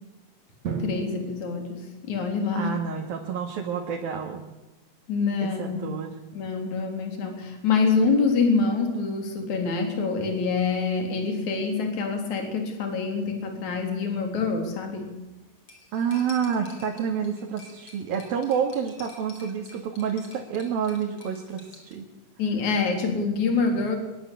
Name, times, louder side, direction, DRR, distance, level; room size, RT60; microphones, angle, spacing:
Drum, 0.7-2.6, right 5 dB, 50° right, 4.2 m, -36 dB
voice 1, 0.8-2.7 5.1-5.8 6.3-15.1 22.4-24.0, left 4 dB, 55° left, 4 dB, 4.8 m, -26 dB
voice 2, 2.5-4.4 5.4-6.1 15.9-22.1, right 7 dB, 80° right, 1 dB, 4.0 m, -29 dB
Cutlery silverware, 15.7-22.0, left 3 dB, 40° left, 5.3 m, -49 dB
23.5 x 21.0 x 8.4 m, 1.0 s
omnidirectional pair, 4.1 m